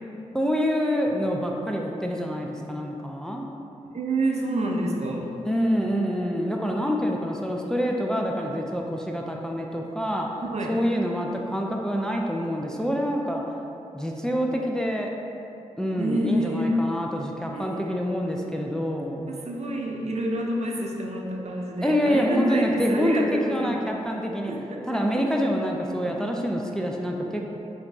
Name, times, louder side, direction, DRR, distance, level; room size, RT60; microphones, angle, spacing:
voice 1, 0.3-3.5 5.4-10.3 10.7-13.6 13.9-15.1 15.8-19.3 21.8-24.5 24.9-27.6, equal, 5° left, 0 dB, 0.4 m, -26 dB
voice 2, 3.9-5.3 10.5-10.8 16.0-16.8 17.5-17.9 19.0-23.8 24.5-24.8 25.9-26.0, right 1 dB, 55° right, 0 dB, 0.5 m, -28 dB
4.0 x 2.6 x 3.4 m, 2.8 s
supercardioid pair, 45°, 13 cm